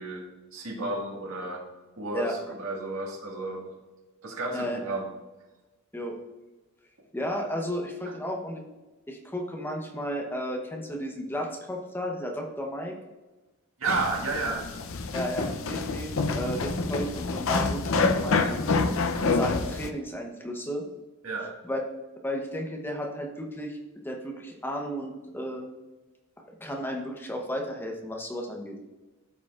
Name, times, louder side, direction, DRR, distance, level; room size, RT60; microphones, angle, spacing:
voice 1, 0.0-1.6 2.0-3.7 4.2-5.1 13.8-14.6 21.2-21.5, right 3 dB, 80° right, -1 dB, 1.8 m, -32 dB
voice 2, 7.1-8.6 9.1-12.9 15.1-18.6 19.2-20.9 21.6-21.8 22.2-23.8 24.0-25.7 26.6-28.8, equal, 10° left, 1 dB, 0.9 m, -33 dB
sound 1, 13.9-19.9, left 3 dB, 70° left, 0.6 m, -27 dB
13.0 x 5.0 x 2.4 m, 1.1 s
head